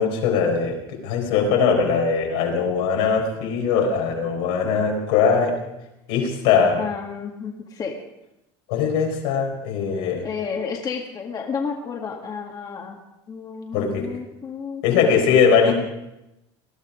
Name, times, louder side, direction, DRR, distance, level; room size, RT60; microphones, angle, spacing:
voice 1, 0.0-5.6 6.1-6.8 8.7-10.3 13.7-14.1 14.8-15.7, left 6 dB, 80° left, 0 dB, 4.3 m, -20 dB
voice 2, 6.8-8.0 10.2-13.0 13.3-15.7, left 6 dB, 35° left, 1 dB, 1.8 m, -31 dB
19.5 x 12.0 x 5.1 m, 0.91 s
supercardioid pair, 115°, 12 cm